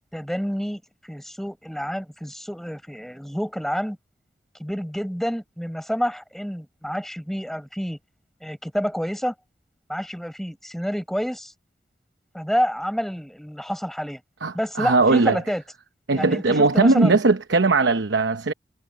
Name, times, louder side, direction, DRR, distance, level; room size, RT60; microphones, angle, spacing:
voice 1, 0.1-4.0 4.6-8.0 8.4-9.3 9.9-11.5 12.3-14.2 14.5-15.6 16.1-17.2, equal, ahead, 6.3 m, -28 dB
voice 2, 14.4-15.4 16.1-18.5, right 3 dB, 90° right, 0.9 m, -19 dB
head